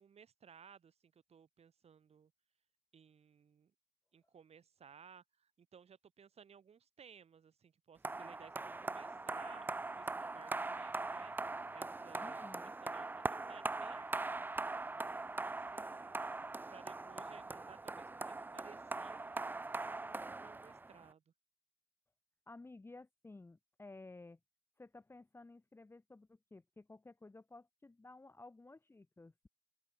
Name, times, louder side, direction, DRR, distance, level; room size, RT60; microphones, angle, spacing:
voice 1, 0.0-2.3 2.9-3.7 4.1-14.3 14.5-16.2 16.5-19.3 19.8-21.3, right 7 dB, 50° right, 6.3 m, -60 dB
sound 1, 8.0-21.1, right 3 dB, 15° right, 0.5 m, -41 dB
voice 2, 12.2-12.8 15.1-15.3 22.5-24.4 24.8-29.5, left 2 dB, 15° left, 1.1 m, -55 dB
open air
supercardioid pair, 65°, 14 cm